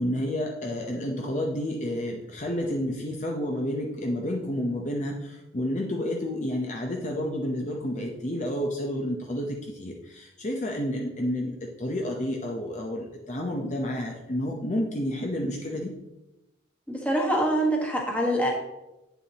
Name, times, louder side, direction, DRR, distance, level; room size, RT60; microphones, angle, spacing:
voice 1, 0.0-15.9, left 1 dB, 40° left, 0 dB, 0.7 m, -30 dB
voice 2, 16.9-18.5, right 1 dB, 5° left, -1 dB, 1.3 m, -25 dB
9.1 x 7.1 x 2.9 m, 0.99 s
head